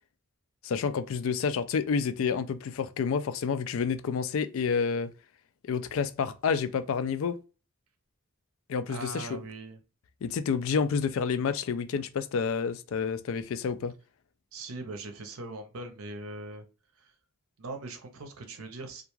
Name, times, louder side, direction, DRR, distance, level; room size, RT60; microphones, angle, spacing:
voice 1, 0.6-5.1 5.7-7.4 8.7-9.4 10.2-13.9, left 6 dB, 65° left, 0.3 m, -29 dB
voice 2, 8.9-9.8 14.5-16.7 17.0-17.1 17.6-19.0, right 2 dB, 75° right, 0.6 m, -40 dB
2.4 x 2.2 x 3.0 m
head